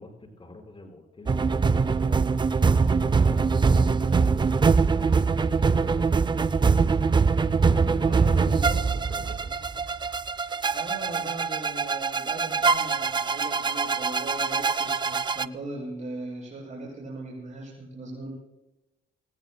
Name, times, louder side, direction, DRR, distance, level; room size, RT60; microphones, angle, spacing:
voice 1, 0.0-6.5 7.7-9.6, left 2 dB, 25° left, 3 dB, 5.4 m, -46 dB
sound 1, 1.3-15.5, right 5 dB, 25° right, 0.5 m, -23 dB
voice 2, 8.0-8.8 10.7-18.3, right 2 dB, 40° right, -3 dB, 6.9 m, -38 dB
28.0 x 18.0 x 2.2 m, 0.94 s
cardioid pair, 90°, 20 cm